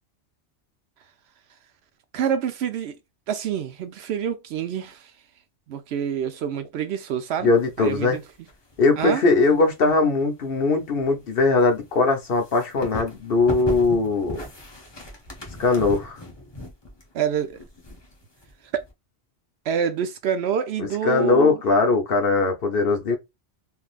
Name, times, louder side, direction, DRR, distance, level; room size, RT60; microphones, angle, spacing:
voice 1, 2.1-3.0 3.3-5.1 5.7-8.5 9.0-9.3 17.1-17.6 18.7-18.8 19.7-21.6, right 8 dB, 70° right, 0.8 m, -27 dB
voice 2, 7.4-8.2 8.8-14.4 15.6-16.2 20.8-23.2, left 3 dB, 60° left, 1.0 m, -20 dB
sound 1, 7.5-8.9 9.2-18.9, left 1 dB, 25° left, 0.8 m, -38 dB
3.5 x 2.6 x 2.4 m
omnidirectional pair, 1.1 m